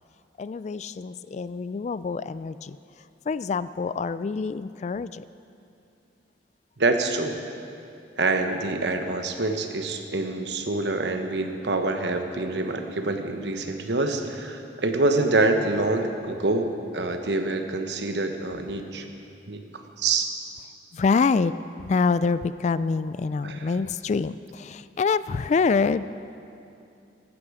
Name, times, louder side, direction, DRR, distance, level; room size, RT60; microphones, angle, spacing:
voice 1, 0.4-2.8 3.3-5.2 20.9-26.1, left 4 dB, 40° left, 15 dB, 0.3 m, -26 dB
voice 2, 6.8-7.4 8.2-19.1 19.5-20.3 23.4-23.8, right 2 dB, 75° right, 6 dB, 1.1 m, -26 dB
15.0 x 12.0 x 4.9 m, 2.7 s
head